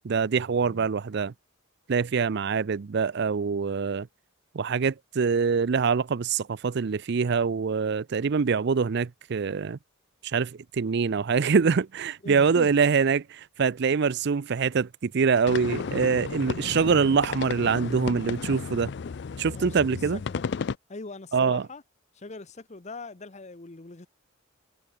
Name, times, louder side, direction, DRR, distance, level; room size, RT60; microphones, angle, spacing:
voice 1, 0.0-1.3 1.9-4.1 4.5-9.8 10.2-18.9 19.4-20.2 21.3-21.7, right 5 dB, 55° right, 0.5 m, -24 dB
voice 2, 12.2-12.7 19.5-20.4 20.9-21.8 22.1-24.1, left 3 dB, 35° left, 0.9 m, -42 dB
sound 1, 15.5-20.8, left 5 dB, 55° left, 0.4 m, -33 dB
head